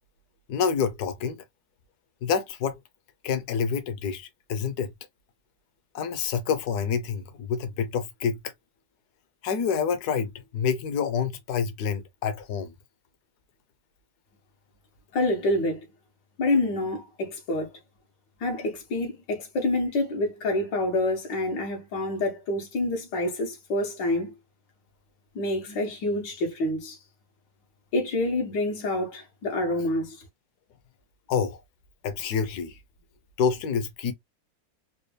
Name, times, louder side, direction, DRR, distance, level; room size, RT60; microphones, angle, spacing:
voice 1, 0.5-1.4 2.2-2.8 3.2-4.9 5.9-8.4 9.4-12.7 31.3-31.6 32.0-32.7 33.4-34.1, left 6 dB, 65° left, 1.3 m, -27 dB
voice 2, 15.1-15.9 16.4-17.7 18.4-24.3 25.4-27.0 27.9-30.2, left 1 dB, 85° left, 1.9 m, -27 dB
4.1 x 2.3 x 3.2 m
omnidirectional pair, 1.9 m